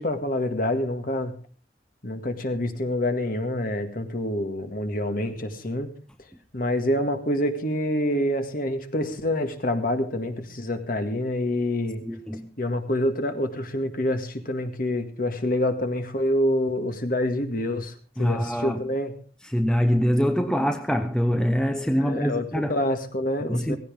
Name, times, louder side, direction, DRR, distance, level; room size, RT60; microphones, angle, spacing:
voice 1, 0.0-1.3 2.0-5.9 6.5-12.0 12.6-19.1 22.0-23.8, left 1 dB, 50° left, 1.9 m, -27 dB
voice 2, 12.0-12.5 18.2-18.9 19.4-22.8 23.4-23.8, equal, 5° left, 0.8 m, -24 dB
17.5 x 16.0 x 3.6 m
head